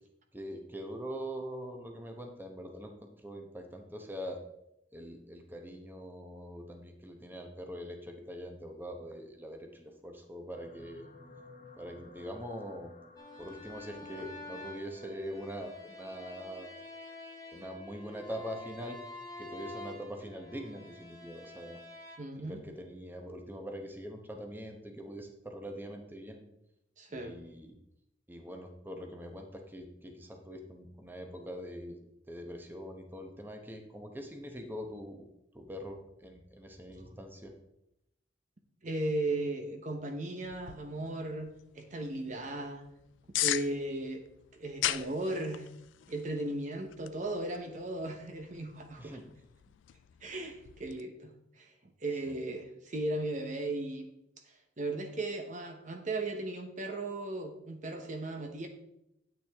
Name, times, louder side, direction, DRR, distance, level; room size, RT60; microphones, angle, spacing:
voice 1, 0.3-2.9 3.2-4.4 4.9-11.1 11.8-12.9 13.4-16.8 17.5-19.0 19.4-21.8 22.4-26.4 27.1-27.7 28.3-32.0 32.3-35.2 35.5-37.5 49.0-49.2 52.3-52.4, equal, 10° right, 3 dB, 1.0 m, -43 dB
sound 1, 10.5-19.0 19.7-20.0 20.3-20.4, left 3 dB, 45° left, 1.2 m, -56 dB
sound 2, 13.2-22.2, left 2 dB, 20° left, 1.7 m, -48 dB
voice 2, 22.2-22.6 27.0-27.4 38.8-42.8 43.3-44.2 44.5-45.7 46.1-49.2 50.2-54.0 54.5-58.7, right 2 dB, 40° right, 5 dB, 0.9 m, -36 dB
sound 3, 40.4-51.0, left 15 dB, 80° left, 0.3 m, -40 dB
9.4 x 8.2 x 3.5 m, 0.83 s
head